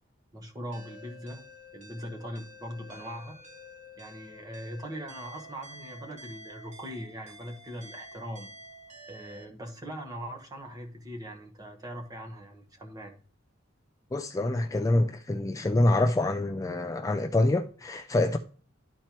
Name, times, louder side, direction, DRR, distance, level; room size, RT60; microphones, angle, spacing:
voice 1, 0.3-1.4 1.7-3.4 4.0-8.5 9.1-13.2, equal, 20° right, 1.2 m, -41 dB
sound 1, 0.7-9.4, left 1 dB, 35° right, 1.3 m, -49 dB
voice 2, 14.1-18.4, left 2 dB, 15° left, 0.3 m, -26 dB
11.5 x 4.3 x 3.0 m
head